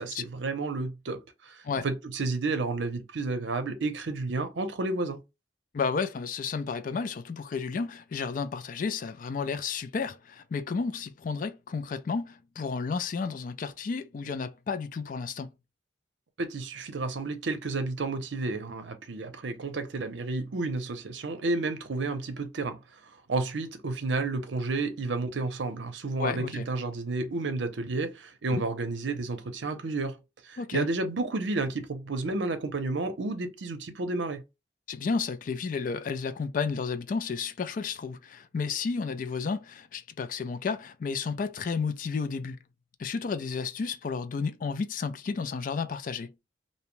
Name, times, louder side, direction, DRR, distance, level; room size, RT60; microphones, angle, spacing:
voice 1, 0.0-5.2 16.4-30.2 30.4-34.4, right 3 dB, 80° right, 0.6 m, -31 dB
voice 2, 5.7-15.5 26.2-26.7 28.5-28.6 30.6-30.9 34.9-42.6 43.0-46.3, left 5 dB, 45° left, 0.4 m, -32 dB
2.8 x 2.1 x 3.0 m
head